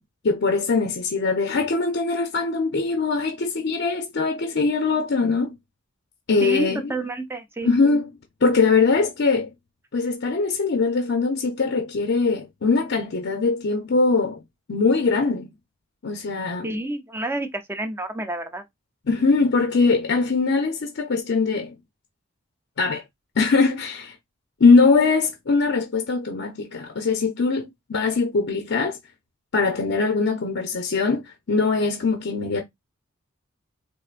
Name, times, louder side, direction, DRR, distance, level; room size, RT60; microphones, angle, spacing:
voice 1, 0.2-5.5 6.3-6.9 7.6-8.1 8.4-9.5 9.9-14.4 14.7-15.5 16.0-16.7 19.1-21.7 22.8-23.0 23.4-24.1 24.6-29.0 29.5-32.6, left 4 dB, 60° left, 0.6 m, -21 dB
voice 2, 6.4-7.7 16.6-18.6, right 2 dB, 10° right, 0.5 m, -29 dB
4.5 x 2.6 x 2.4 m
head